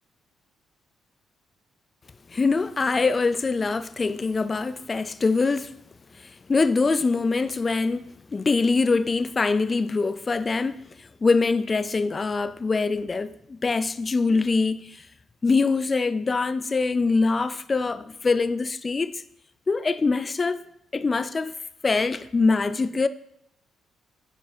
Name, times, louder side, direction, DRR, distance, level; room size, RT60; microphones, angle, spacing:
voice 1, 2.3-5.8 6.2-15.1 15.4-19.2 19.7-20.7 20.9-21.5 21.8-23.1, left 4 dB, 30° left, 0.3 m, -24 dB
9.0 x 4.7 x 4.3 m
cardioid pair, 90°, 0 cm